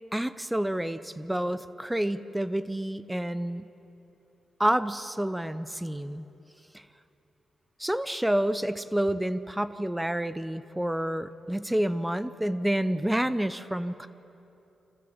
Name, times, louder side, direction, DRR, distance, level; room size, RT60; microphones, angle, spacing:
voice 1, 0.1-3.7 4.6-6.2 6.7-6.8 7.8-14.1, right 1 dB, 5° right, 12 dB, 0.6 m, -29 dB
26.5 x 15.0 x 7.2 m, 3.0 s
cardioid pair, 105°, 0 cm